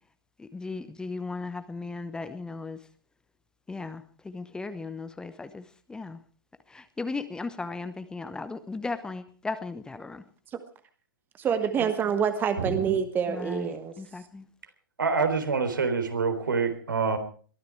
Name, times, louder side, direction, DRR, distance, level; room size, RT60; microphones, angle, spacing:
voice 1, 0.4-2.8 3.7-5.6 5.9-6.2 6.7-10.2 13.3-14.5, left 3 dB, 5° left, 11 dB, 0.9 m, -36 dB
voice 2, 11.4-13.9, right 7 dB, 15° right, 10 dB, 1.3 m, -26 dB
voice 3, 15.0-17.2, right 4 dB, 70° right, 7 dB, 3.8 m, -26 dB
22.0 x 13.5 x 4.7 m, 0.42 s
figure-of-eight pair, 115°, 11 cm